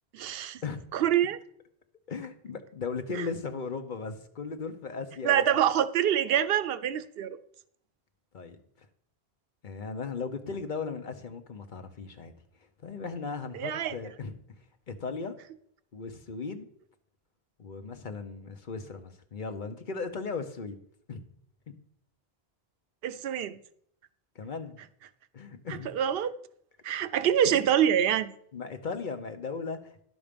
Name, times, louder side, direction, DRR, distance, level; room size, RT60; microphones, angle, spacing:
voice 1, 0.1-0.6 0.9-1.4 3.2-3.3 5.2-7.4 13.5-13.9 23.0-23.6 25.9-26.3 26.8-28.3, right 10 dB, 70° right, 0.8 m, -26 dB
voice 2, 2.1-5.6 8.3-8.9 9.6-12.3 12.8-14.3 14.9-15.3 15.9-16.7 17.6-20.8 21.1-21.2 24.3-24.8 25.3-26.0 27.2-27.6 28.5-30.0, left 4 dB, 50° left, 1.0 m, -37 dB
11.0 x 6.2 x 5.2 m
omnidirectional pair, 1.1 m